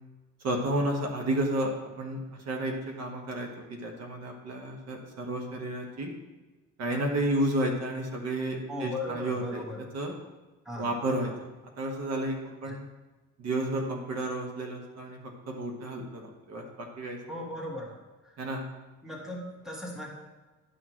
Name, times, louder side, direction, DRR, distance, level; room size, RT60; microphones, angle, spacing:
voice 1, 0.4-6.1 6.8-9.6 9.9-10.2 10.8-11.5 11.8-12.8 13.4-17.2 18.4-18.6, right 1 dB, 55° right, 2 dB, 1.3 m, -32 dB
voice 2, 8.7-9.8 10.6-10.9 12.7-12.8 17.3-17.9 18.2-18.3 19.0-20.1, left 2 dB, ahead, -2 dB, 1.4 m, -37 dB
11.0 x 6.3 x 3.0 m, 1.2 s
cardioid pair, 150°, 31 cm